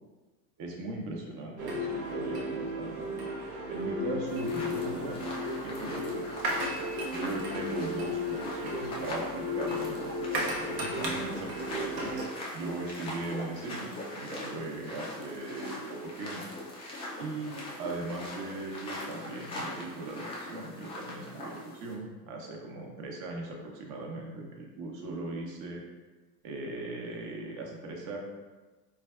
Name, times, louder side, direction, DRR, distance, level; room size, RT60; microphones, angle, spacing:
voice 1, 0.6-3.3 3.7-5.3 5.6-6.2 7.1-12.1 12.5-16.4 17.2-25.8 26.4-28.2, right 2 dB, 40° right, 0 dB, 0.8 m, -39 dB
sound 1, 1.6-12.2, left 1 dB, 85° right, 0.8 m, -34 dB
sound 2, 4.3-21.9, left 1 dB, 15° left, 0.3 m, -41 dB
4.1 x 2.2 x 2.3 m, 1.2 s
hypercardioid pair, 95°, 47 cm